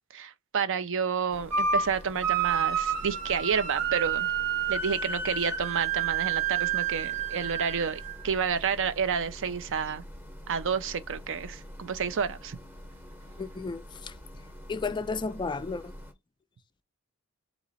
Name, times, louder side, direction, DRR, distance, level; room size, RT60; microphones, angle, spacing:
voice 1, 0.1-4.3 4.7-10.0 10.5-12.6, right 6 dB, 60° right, 0.6 m, -30 dB
sound 1, 1.3-16.1, equal, 10° right, 1.0 m, -46 dB
sound 2, 1.5-1.9 2.2-8.3, right 7 dB, 75° right, 0.9 m, -29 dB
voice 2, 13.4-14.2 14.7-15.9, left 4 dB, 20° left, 0.3 m, -33 dB
4.2 x 2.9 x 4.0 m
head